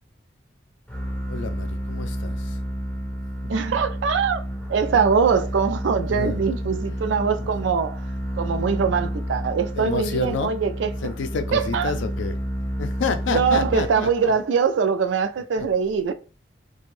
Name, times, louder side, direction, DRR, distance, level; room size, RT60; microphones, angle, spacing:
sound 1, 0.9-14.3, equal, 5° left, 0.4 m, -30 dB
voice 1, 1.3-2.6 6.1-6.4 9.7-10.5 11.0-12.4 12.8-14.4 15.6-15.7, left 4 dB, 85° left, 0.4 m, -29 dB
voice 2, 3.5-4.4 4.7-8.0 8.4-10.9 11.5-11.9 13.3-16.1, right 6 dB, 85° right, 0.4 m, -22 dB
2.5 x 2.2 x 3.1 m
head